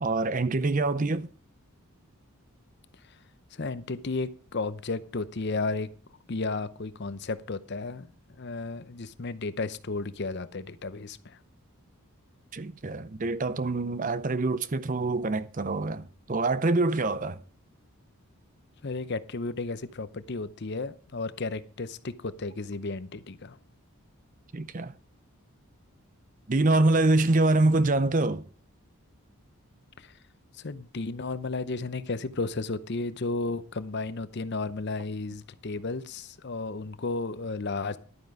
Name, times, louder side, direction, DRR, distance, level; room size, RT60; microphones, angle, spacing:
voice 1, 0.0-1.3 12.5-17.4 24.5-24.9 26.5-28.5, right 2 dB, 35° right, 0.5 m, -25 dB
voice 2, 3.6-5.9 6.3-8.1 8.4-11.4 18.8-23.6 30.0-30.1 30.6-38.0, left 3 dB, 50° left, 0.7 m, -33 dB
11.5 x 9.3 x 4.8 m
head